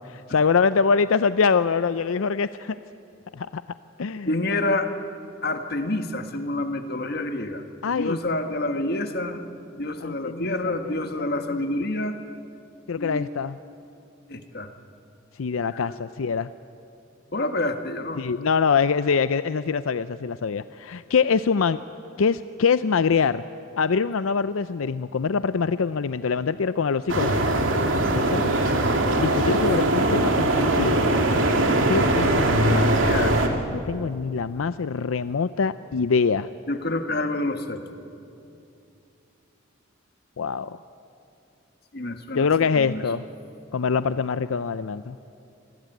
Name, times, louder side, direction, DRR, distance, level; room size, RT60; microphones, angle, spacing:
voice 1, 0.0-2.8 3.3-3.6 4.0-4.4 7.8-8.2 10.0-10.6 10.8-11.3 12.9-13.6 15.4-16.5 18.2-21.8 22.2-23.4 23.8-27.3 28.1-28.6 29.2-31.1 31.9-33.0 33.7-36.5 40.4-40.8 42.3-43.2 43.7-45.2, left 5 dB, 85° left, 14 dB, 0.5 m, -24 dB
voice 2, 4.2-4.9 5.4-9.4 9.7-12.2 13.0-13.3 14.3-14.7 15.8-16.0 17.3-18.2 32.7-33.4 36.7-38.0 41.9-42.5 42.8-43.0, left 2 dB, 50° left, 7 dB, 1.6 m, -28 dB
sound 1, 27.1-33.5, right 1 dB, 70° right, 2.4 m, -21 dB
26.0 x 20.0 x 9.2 m, 2.7 s
head